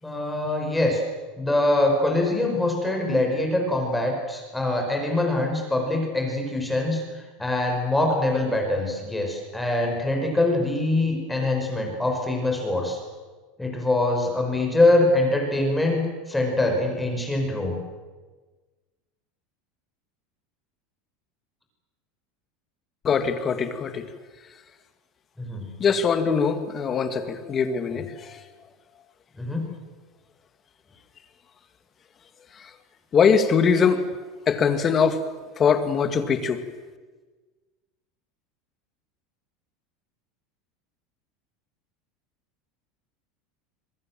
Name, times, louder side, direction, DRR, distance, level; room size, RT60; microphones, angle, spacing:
voice 1, 0.0-1.0 1.4-7.0 7.4-13.0 13.6-17.8 25.4-25.7 27.9-28.0 29.4-29.6, left 2 dB, 5° left, 2 dB, 5.6 m, -24 dB
voice 2, 23.0-24.1 25.8-28.3 33.1-34.0 34.5-35.2 35.6-36.6, left 6 dB, 25° left, 9 dB, 2.1 m, -22 dB
26.0 x 23.0 x 7.7 m, 1.3 s
supercardioid pair, 155°, 0 cm